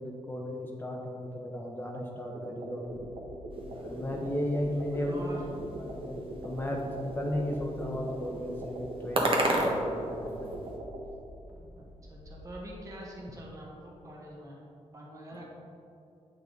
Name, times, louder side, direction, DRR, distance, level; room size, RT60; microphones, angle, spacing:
voice 1, 0.0-3.0 3.8-5.2 5.8-10.5, left 1 dB, 20° left, -1 dB, 0.7 m, -35 dB
sound 1, 2.3-11.1, right 1 dB, 75° right, 1.1 m, -42 dB
sound 2, 2.8-12.7, left 1 dB, ahead, 1.2 m, -50 dB
sound 3, 3.5-10.8, right 1 dB, 50° right, 1.2 m, -35 dB
voice 2, 3.7-4.2 4.7-5.7 11.8-14.6 14.9-15.5, equal, 30° right, -3 dB, 1.3 m, -45 dB
8.6 x 5.7 x 3.9 m, 2.7 s
wide cardioid pair, 120°, 11 cm